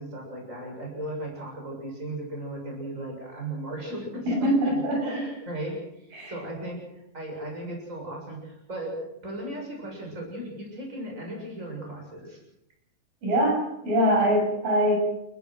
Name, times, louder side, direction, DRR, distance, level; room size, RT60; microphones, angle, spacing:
voice 1, 0.0-4.5 5.0-6.8 7.1-12.4, right 1 dB, 20° right, 0 dB, 7.3 m, -36 dB
voice 2, 4.3-5.2 6.1-6.3 13.2-15.0, equal, 85° right, 0 dB, 9.0 m, -23 dB
29.5 x 15.0 x 6.4 m, 0.81 s
omnidirectional pair, 3.9 m